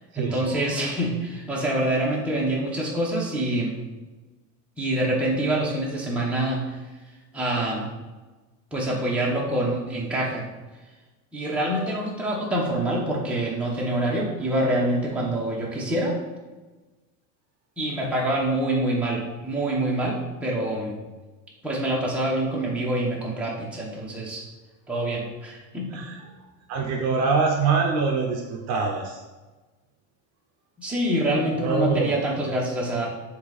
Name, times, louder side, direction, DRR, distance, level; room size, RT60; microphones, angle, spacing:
voice 1, 0.1-3.8 4.8-6.7 7.3-7.9 8.7-10.5 11.3-16.2 17.8-21.0 21.6-24.4 24.9-26.0 30.8-33.1, right 1 dB, 5° right, -5 dB, 1.0 m, -26 dB
voice 2, 26.7-29.2 31.6-32.1, right 4 dB, 40° right, 1 dB, 0.7 m, -24 dB
7.6 x 3.3 x 4.1 m, 1.2 s
supercardioid pair, 160°, 39 cm